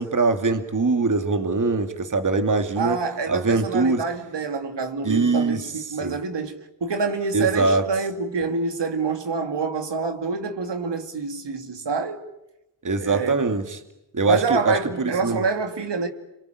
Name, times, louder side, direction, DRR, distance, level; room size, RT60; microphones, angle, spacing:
voice 1, 0.0-3.0 3.3-4.0 5.0-6.2 7.3-7.9 12.8-13.8 14.1-15.4, right 3 dB, 40° right, 2.5 m, -23 dB
voice 2, 2.8-6.5 6.8-12.2 13.0-13.5 14.2-16.1, right 4 dB, 65° right, 2.8 m, -27 dB
27.0 x 23.5 x 9.5 m
cardioid pair, 65°, 45 cm